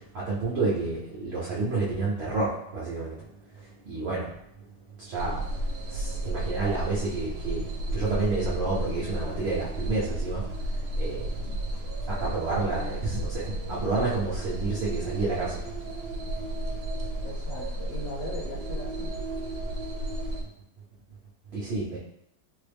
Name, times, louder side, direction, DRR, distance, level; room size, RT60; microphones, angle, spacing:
voice 1, 0.1-3.2 3.8-4.3 5.0-5.4 5.9-7.6 7.9-10.5 11.0-11.5 12.1-13.4 13.7-15.6 21.5-22.0, right 3 dB, 55° right, -7 dB, 0.8 m, -29 dB
sound 1, 5.1-20.4, right 1 dB, 85° right, 1.2 m, -33 dB
voice 2, 17.2-19.2, left 2 dB, 60° left, -1 dB, 1.0 m, -39 dB
3.8 x 2.0 x 3.4 m, 0.77 s
omnidirectional pair, 1.7 m